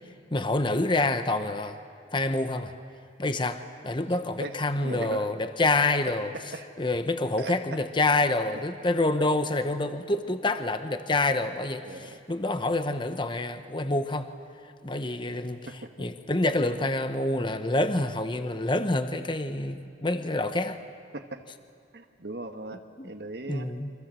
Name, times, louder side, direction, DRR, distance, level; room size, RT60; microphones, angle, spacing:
voice 1, 0.3-1.8 2.1-2.7 3.2-6.3 6.8-14.3 14.8-15.6 16.0-20.8 23.0-23.1 23.5-23.9, left 2 dB, 30° left, 9 dB, 1.0 m, -27 dB
voice 2, 4.8-5.3 6.3-6.7 7.4-7.8 11.8-12.2 15.7-15.9 21.1-21.4 21.9-23.7, right 2 dB, 65° right, 5 dB, 1.4 m, -38 dB
30.0 x 25.0 x 7.6 m, 2.5 s
head